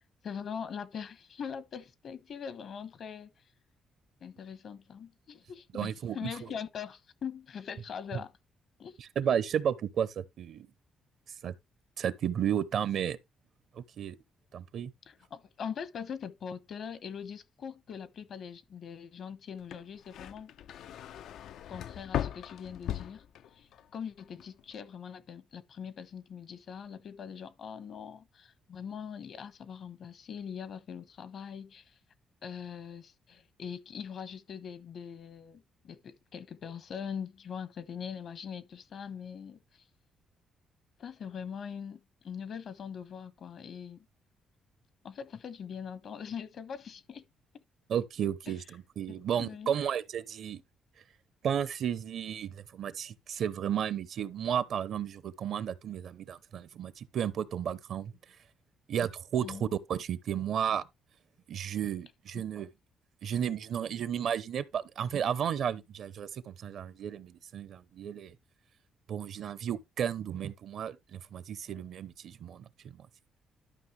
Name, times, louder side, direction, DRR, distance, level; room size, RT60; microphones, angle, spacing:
voice 1, 0.2-3.3 4.2-8.3 8.8-9.0 15.1-20.5 21.7-23.2 23.6-32.0 32.4-39.8 41.0-44.1 45.0-47.2 48.5-48.6 49.1-49.7 59.4-59.7 62.3-62.4, left 7 dB, 60° left, 1.1 m, -42 dB
voice 2, 5.7-6.5 8.1-8.2 9.0-10.7 11.4-11.5 12.0-13.2 13.8-14.2 14.5-14.9 47.9-50.6 51.4-58.1 58.9-60.8 61.5-62.7 63.2-68.4 69.1-72.7 73.0-73.1, right 9 dB, 65° right, 0.8 m, -33 dB
sound 1, 19.6-23.9 24.2-24.7, left 11 dB, 75° left, 0.4 m, -38 dB
12.0 x 5.6 x 3.3 m
cardioid pair, 90°, 0 cm